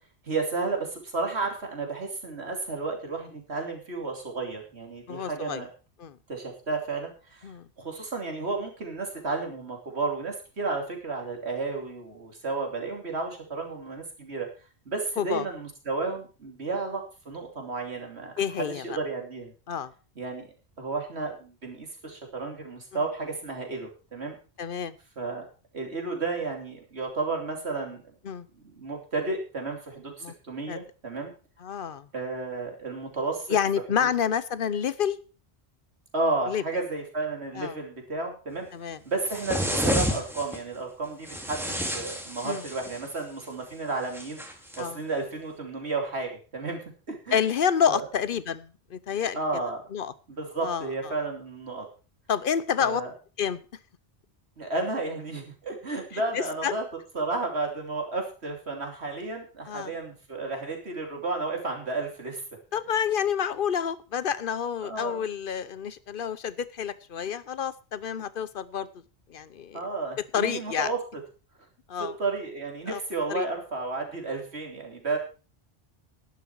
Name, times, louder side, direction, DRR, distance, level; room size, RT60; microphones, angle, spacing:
voice 1, 0.2-5.7 6.3-7.5 7.8-14.5 14.8-19.5 20.2-20.5 20.8-24.3 25.2-25.4 25.7-28.0 28.6-31.3 32.1-33.5 34.0-34.1 36.1-38.7 39.0-44.4 44.8-46.8 47.1-47.4 47.9-48.0 49.3-49.8 50.3-51.9 52.8-53.1 54.6-56.8 57.1-62.4 64.8-65.3 69.7-71.0 72.0-75.2, right 3 dB, 75° right, 2 dB, 3.2 m, -32 dB
voice 2, 5.1-5.6 6.0-6.2 7.4-7.7 15.2-15.5 18.4-18.8 19.7-19.9 24.6-24.9 28.2-28.5 30.2-30.3 30.7-30.8 31.6-32.1 33.5-35.2 36.5-36.6 37.6-37.7 38.7-39.0 42.4-42.6 44.8-45.0 47.3-49.4 49.9-50.1 50.6-50.9 52.3-53.0 53.4-53.6 56.3-56.7 59.7-59.9 62.7-68.9 69.3-69.8 70.3-70.9 71.9-72.2 72.9-73.0 73.3-73.5, left 8 dB, 55° left, 17 dB, 0.9 m, -28 dB
sound 1, 39.3-40.6 41.3-43.1 44.1-44.8, equal, ahead, 2.0 m, -30 dB
11.5 x 11.0 x 4.6 m, 0.36 s
omnidirectional pair, 1.1 m